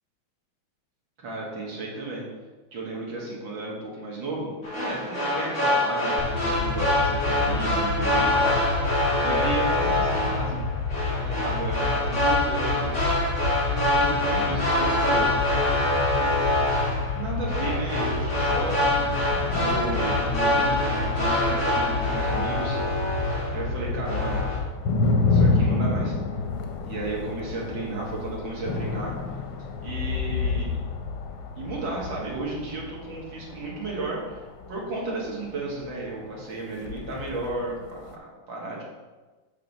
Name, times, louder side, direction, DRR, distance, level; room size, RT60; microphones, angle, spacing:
voice 1, 1.2-2.2 2.7-8.5 8.8-10.6 11.2-13.1 13.7-15.3 16.1-16.3 17.2-18.9 19.5-22.8 23.5-24.4 25.2-26.2 26.9-29.1 29.8-30.8 31.6-38.8, right 2 dB, 70° right, -3 dB, 2.4 m, -33 dB
sound 1, 4.6-23.7 24.0-24.6, left 1 dB, 35° left, 2.3 m, -25 dB
sound 2, 6.2-24.7, left 4 dB, 65° left, 1.0 m, -30 dB
sound 3, 18.4-23.3 23.6-36.3 36.7-38.1, left 3 dB, 90° left, 1.6 m, -29 dB
7.5 x 5.4 x 4.1 m, 1.3 s
omnidirectional pair, 2.2 m